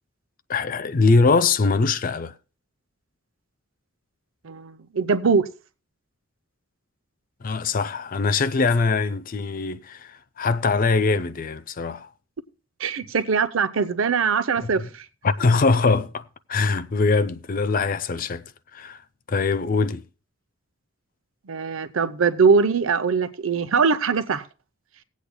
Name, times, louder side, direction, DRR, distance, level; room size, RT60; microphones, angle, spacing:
voice 1, 0.5-2.3 7.4-12.1 14.6-14.9 15.2-18.4 18.7-19.0 19.3-20.0, left 4 dB, 45° left, 0.5 m, -22 dB
voice 2, 4.4-5.4 12.8-14.8 21.5-24.4, right 5 dB, 80° right, 0.7 m, -21 dB
20.0 x 8.4 x 2.2 m
head